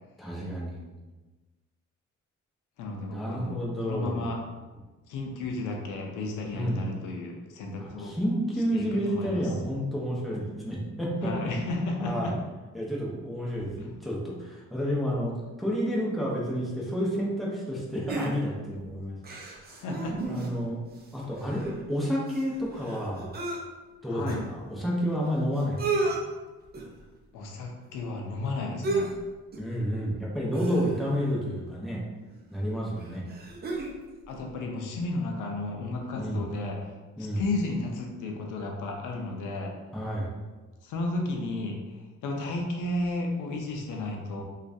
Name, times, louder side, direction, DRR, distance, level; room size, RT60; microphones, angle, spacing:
voice 1, 0.2-0.8 3.1-4.3 6.5-6.8 7.8-11.3 12.0-12.4 12.7-19.2 20.3-20.8 21.1-23.3 24.0-26.1 29.6-32.0 32.5-33.3 36.2-36.5 37.2-37.4 39.9-40.3, equal, ahead, -5 dB, 0.8 m, -30 dB
voice 2, 2.8-4.4 5.1-8.1 8.7-9.4 11.2-12.3 13.8-13.9 19.7-20.2 24.1-24.4 27.3-29.1 34.3-36.9 37.3-39.7 40.8-41.8 42.2-44.4, left 2 dB, 85° left, 1 dB, 0.5 m, -33 dB
sound 1, 18.1-18.7 19.2-20.7 21.0-21.1 21.3-23.6 24.3-24.4 25.3-25.4 25.6-26.2 26.7-27.0 28.8-29.2 29.5-29.7 30.5-31.2 32.3-32.4 33.0-34.0 34.3-34.4, right 3 dB, 30° right, 0.6 m, -32 dB
3.0 x 2.4 x 2.6 m, 1.2 s
cardioid pair, 90°, 30 cm